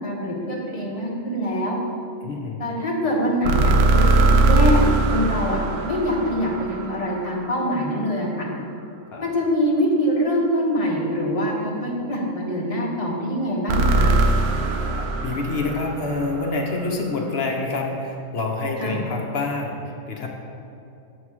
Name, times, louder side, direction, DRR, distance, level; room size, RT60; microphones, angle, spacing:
voice 1, 0.0-1.8 2.6-8.5 9.2-14.1 18.8-19.0, equal, 25° left, -3 dB, 1.0 m, -24 dB
voice 2, 2.2-2.6 9.1-9.2 14.7-20.3, left 3 dB, 55° left, 0 dB, 0.8 m, -27 dB
sound 1, 3.4-7.5 13.7-16.8, right 2 dB, 85° right, 1.1 m, -20 dB
7.3 x 3.0 x 6.0 m, 2.8 s
omnidirectional pair, 1.6 m